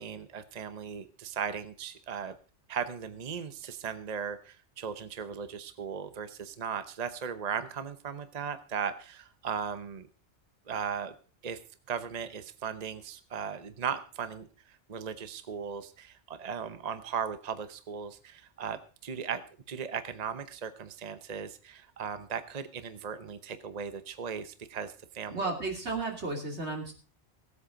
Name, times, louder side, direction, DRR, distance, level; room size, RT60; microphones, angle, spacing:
voice 1, 0.0-2.3 2.7-10.1 10.7-11.1 11.4-11.6 11.9-14.5 14.9-19.4 19.7-25.4, right 7 dB, 40° right, 11 dB, 0.9 m, -37 dB
voice 2, 25.3-26.9, right 3 dB, 70° right, 2 dB, 3.1 m, -33 dB
17.5 x 8.3 x 5.1 m, 0.37 s
omnidirectional pair, 1.2 m